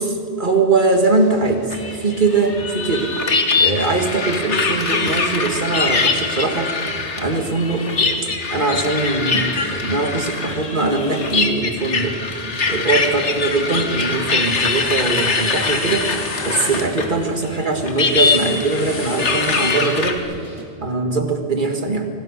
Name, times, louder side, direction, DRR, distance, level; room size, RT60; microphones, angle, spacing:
voice 1, 0.0-3.1 3.6-6.8 7.2-7.9 8.5-12.2 12.7-16.1 16.4-20.2 20.8-22.1, right 3 dB, 45° right, 4 dB, 2.2 m, -21 dB
sound 1, 0.9-20.6, right 1 dB, 30° right, 2.9 m, -41 dB
sound 2, 1.7-17.2 17.4-20.2, left 4 dB, 90° left, 2.0 m, -22 dB
sound 3, 13.3-13.5 13.8-20.3, left 2 dB, 55° left, 3.0 m, -34 dB
25.5 x 18.0 x 6.6 m, 2.5 s
omnidirectional pair, 1.1 m